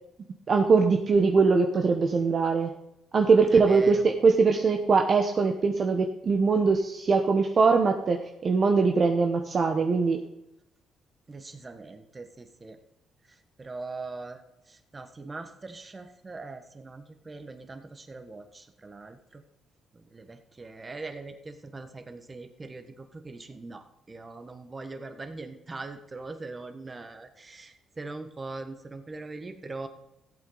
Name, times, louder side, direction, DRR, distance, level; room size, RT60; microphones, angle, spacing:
voice 1, 0.5-2.7 3.1-10.2, right 4 dB, 45° right, 3 dB, 1.0 m, -22 dB
voice 2, 3.5-4.1 11.3-12.8 13.6-14.4 14.7-19.4 20.1-29.9, right 3 dB, 25° right, 7 dB, 1.4 m, -41 dB
15.0 x 8.4 x 4.0 m, 0.84 s
cardioid pair, 90°, 0 cm